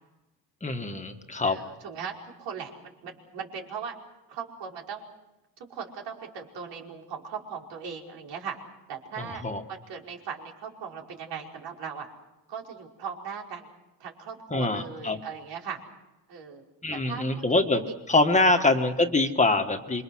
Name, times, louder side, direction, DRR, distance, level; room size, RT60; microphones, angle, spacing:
voice 1, 0.6-1.6 9.4-9.6 14.5-15.2 16.8-20.0, left 2 dB, 15° left, 5 dB, 1.7 m, -24 dB
voice 2, 1.4-2.1 2.4-3.9 4.3-5.1 5.6-8.6 8.9-9.4 9.7-12.1 12.5-13.7 14.0-15.8 16.3-16.6 16.9-17.7 18.5-18.6, right 6 dB, 80° right, 0 dB, 5.3 m, -38 dB
27.5 x 24.0 x 6.3 m, 1.0 s
cardioid pair, 135°, 42 cm